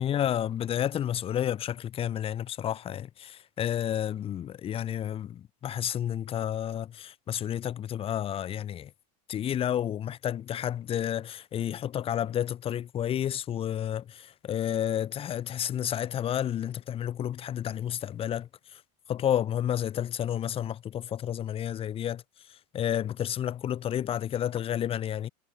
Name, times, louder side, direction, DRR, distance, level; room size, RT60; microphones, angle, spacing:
voice 1, 0.0-8.9 9.3-18.8 19.1-22.2 22.7-25.3, left 10 dB, 25° left, 5.6 m, -31 dB
supercardioid pair, 145°, 21 cm